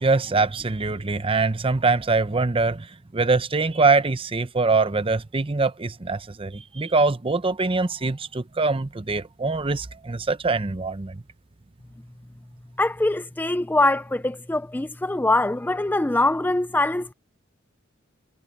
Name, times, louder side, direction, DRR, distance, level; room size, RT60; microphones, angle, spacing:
voice 1, 0.0-2.9 3.1-11.2, right 3 dB, 25° right, 0.7 m, -23 dB
voice 2, 12.8-17.1, left 2 dB, 10° left, 0.4 m, -23 dB
head